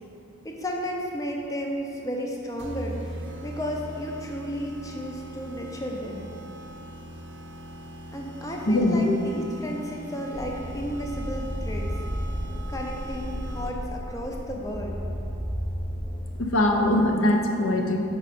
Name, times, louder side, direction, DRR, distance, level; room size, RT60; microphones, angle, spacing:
voice 1, 0.4-3.0 3.4-6.3 8.1-11.9 12.7-15.0, equal, 15° left, 0 dB, 0.5 m, -33 dB
sound 1, 2.6-14.0, right 1 dB, 60° right, 0.6 m, -41 dB
voice 2, 8.7-9.2 16.4-18.0, left 1 dB, 75° left, 2 dB, 0.6 m, -22 dB
sound 2, 10.3-16.3, equal, ahead, 0.8 m, -33 dB
5.2 x 4.7 x 4.2 m, 2.7 s
head